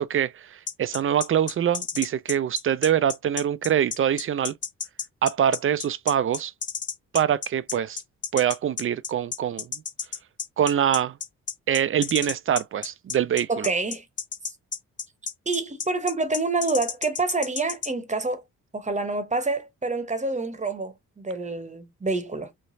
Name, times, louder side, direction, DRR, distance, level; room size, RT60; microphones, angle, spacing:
voice 1, 0.0-4.5 5.2-6.5 7.1-8.0 8.3-9.7 10.6-11.1 11.7-13.7, right 9 dB, 40° right, 0.4 m, -24 dB
sound 1, 0.7-17.9, left 6 dB, 35° left, 0.6 m, -32 dB
voice 2, 13.5-14.0 15.5-18.4 18.7-22.5, right 3 dB, 20° right, 0.9 m, -27 dB
3.2 x 2.1 x 2.6 m
supercardioid pair, 45°, 35 cm